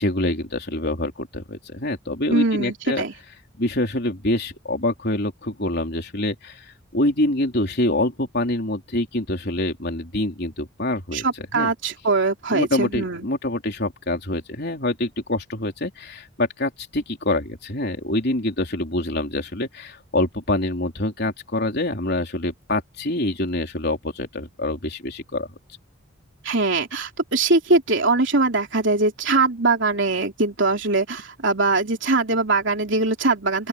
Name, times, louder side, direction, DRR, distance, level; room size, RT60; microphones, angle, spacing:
voice 1, 0.0-3.0 3.6-6.7 6.9-11.2 11.5-11.7 12.5-25.5, left 1 dB, 50° left, 3.9 m, -25 dB
voice 2, 2.3-3.1 11.1-13.3 26.4-33.7, right 3 dB, 60° right, 3.5 m, -22 dB
open air
head